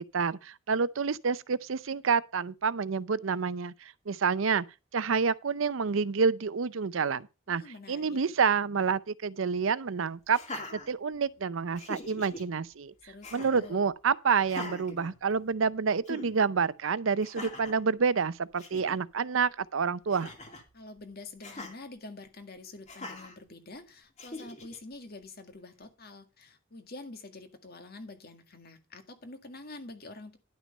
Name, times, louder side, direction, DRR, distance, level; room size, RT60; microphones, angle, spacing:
voice 1, 0.1-4.6 4.9-7.6 7.9-10.4 10.7-12.9 13.3-20.3, right 5 dB, 85° right, 0.6 m, -28 dB
voice 2, 7.5-8.4 13.1-13.8 20.7-30.4, left 2 dB, 50° left, 1.8 m, -47 dB
Laughter, 10.3-11.4 11.8-12.4 13.2-13.7 14.4-15.7 16.1-16.3 17.2-17.8 18.3-18.4 18.6-19.0 20.1-20.7 21.4-21.7 22.9-23.4 24.2-24.8, left 2 dB, 35° left, 2.3 m, -42 dB
11.0 x 6.1 x 5.4 m
head